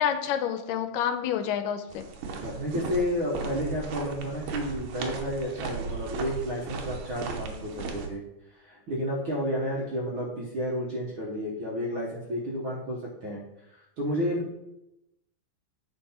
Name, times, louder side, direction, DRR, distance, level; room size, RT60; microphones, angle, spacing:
voice 1, 0.0-2.0, left 9 dB, 85° left, 8 dB, 2.2 m, -28 dB
sound 1, 1.9-8.1, right 5 dB, 80° right, 2.5 m, -36 dB
voice 2, 2.4-8.2 8.5-13.4 13.7-14.6, equal, 60° right, -4 dB, 1.4 m, -31 dB
9.4 x 4.7 x 4.3 m, 0.87 s
omnidirectional pair, 3.9 m